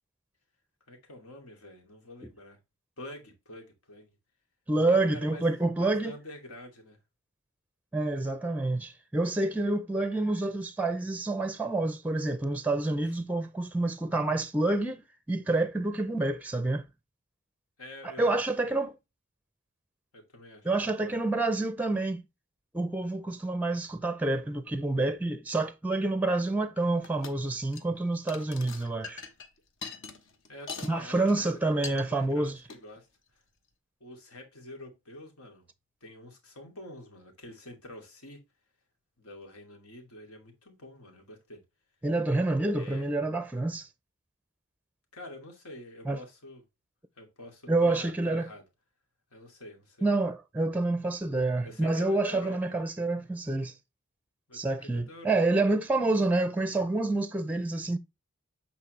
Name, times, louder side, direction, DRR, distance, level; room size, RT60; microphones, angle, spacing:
voice 1, 0.9-2.6 3.0-4.1 4.9-5.4 5.7-7.0 13.0-13.1 17.8-18.7 20.1-21.1 30.5-33.1 33.3-33.4 34.0-35.7 36.0-38.4 39.2-41.6 42.8-43.1 45.1-46.6 47.2-48.6 49.3-50.1 51.6-52.6 54.5-55.4, left 1 dB, 85° left, 2.6 m, -47 dB
voice 2, 4.7-6.1 7.9-15.0 15.3-16.8 18.2-18.9 20.6-22.2 22.7-29.2 30.9-32.6 42.0-43.9 46.0-46.2 47.7-48.5 50.0-53.7 54.5-58.0, right 2 dB, 5° right, 0.5 m, -28 dB
sound 1, 27.0-27.4 27.6-28.0 28.3-31.0 31.2-31.5 31.8-32.0 32.6-32.8, left 4 dB, 60° left, 1.2 m, -42 dB
8.4 x 4.2 x 3.2 m
head